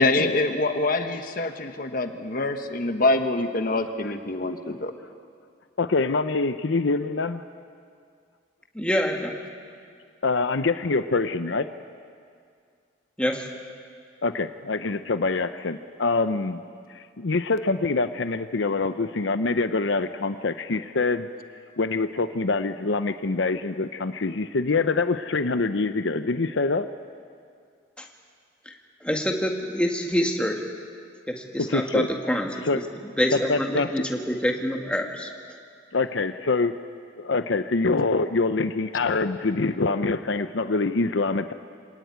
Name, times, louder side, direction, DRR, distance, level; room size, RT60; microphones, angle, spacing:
voice 1, 0.0-4.9, left 2 dB, 45° left, 7 dB, 1.2 m, -25 dB
voice 2, 5.8-7.4 10.2-11.7 14.2-16.6 16.9-21.3 21.8-26.9 31.6-32.1 32.6-32.8 33.3-33.9 35.9-36.7 37.2-41.5, left 3 dB, 70° left, 10 dB, 0.7 m, -25 dB
voice 3, 8.7-9.3 13.2-13.5 28.0-28.1 28.7-28.8 29.0-30.6 31.3-32.8 33.2-35.3, equal, 5° left, 2 dB, 1.9 m, -26 dB
26.0 x 18.5 x 9.4 m, 2.2 s
head